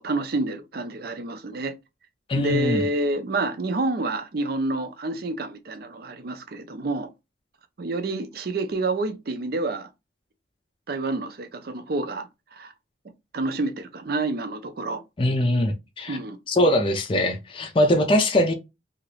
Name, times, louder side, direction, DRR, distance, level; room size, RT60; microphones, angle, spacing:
voice 1, 0.0-1.7 2.3-7.1 7.8-9.9 10.9-12.7 13.3-15.0 16.1-16.4, right 2 dB, 55° right, 0.5 m, -28 dB
voice 2, 2.3-2.9 15.2-16.2 16.5-18.5, left 1 dB, 25° left, 0.5 m, -22 dB
2.8 x 2.5 x 3.1 m
head